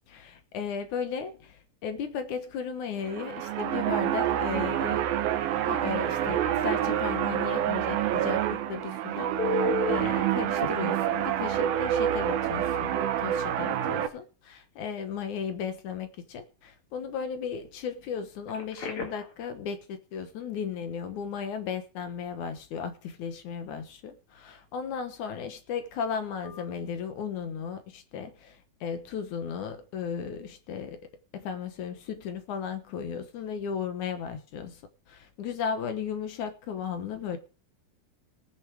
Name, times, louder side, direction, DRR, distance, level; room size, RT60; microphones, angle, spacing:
voice 1, 0.1-5.0 5.7-31.0 31.3-34.8 35.1-37.4, left 7 dB, 65° left, 9 dB, 2.4 m, -35 dB
sound 1, 3.0-14.1, right 11 dB, 80° right, 2.8 m, -27 dB
Telephone, 9.4-10.1 10.6-10.7 12.5-12.6 13.0-13.2 18.5-19.3 26.4-26.6, left 3 dB, 40° left, 2.7 m, -31 dB
19.5 x 7.1 x 4.7 m, 0.34 s
omnidirectional pair, 4.3 m